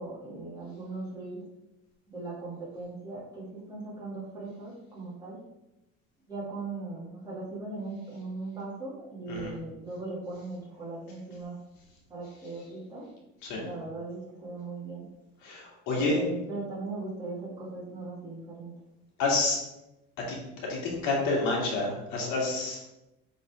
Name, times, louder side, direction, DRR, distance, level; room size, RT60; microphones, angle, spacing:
voice 1, 0.0-1.4 2.1-5.4 6.3-11.6 12.1-13.1 13.5-15.1 15.9-18.7, right 3 dB, 15° right, -8 dB, 2.4 m, -39 dB
voice 2, 15.4-16.2 19.2-19.6 20.3-22.8, left 3 dB, 75° left, -2 dB, 2.4 m, -29 dB
8.4 x 4.2 x 3.6 m, 0.93 s
cardioid pair, 170°, 29 cm